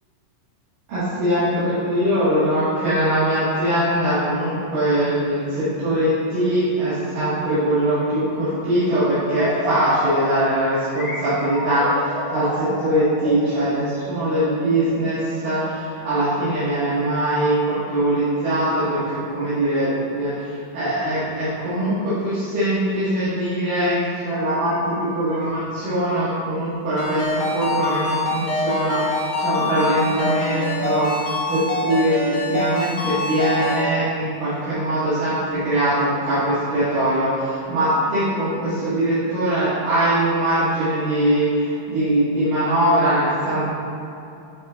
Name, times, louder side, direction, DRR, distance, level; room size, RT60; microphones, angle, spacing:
voice 1, 0.9-19.0 19.3-43.6, right 1 dB, 70° right, -14 dB, 3.4 m, -22 dB
sound 1, 9.2-15.9, left 1 dB, 40° left, 1.9 m, -31 dB
Ringtone, 27.0-33.8, left 2 dB, 80° left, 2.9 m, -25 dB
11.0 x 6.2 x 2.5 m, 2.7 s
omnidirectional pair, 4.0 m